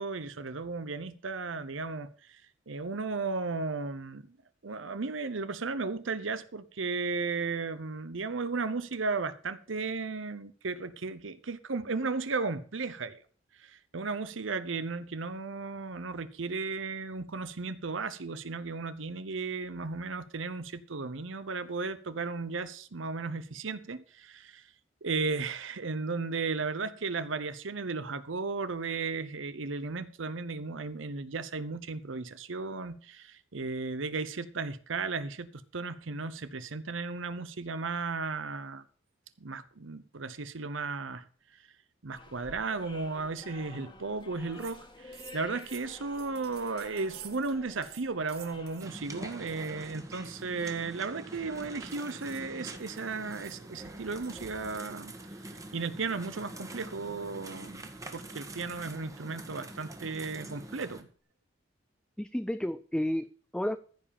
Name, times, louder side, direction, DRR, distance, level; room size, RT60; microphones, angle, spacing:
voice 1, 0.0-2.4 2.7-4.2 4.6-13.2 13.6-24.7 25.0-38.8 39.4-41.3 42.0-55.1 55.7-57.8 58.1-61.1, right 4 dB, 75° right, 0.8 m, -35 dB
sound 1, 42.1-48.8, left 2 dB, 25° left, 1.7 m, -50 dB
sound 2, 44.2-44.3 44.5-44.8 45.1-47.6 47.8-48.9 49.3-49.7 50.1-54.9, right 11 dB, 55° right, 1.4 m, -52 dB
sound 3, 48.8-61.0, right 2 dB, 15° right, 1.6 m, -45 dB
voice 2, 62.2-63.8, equal, 5° left, 0.4 m, -32 dB
15.0 x 5.0 x 7.0 m
head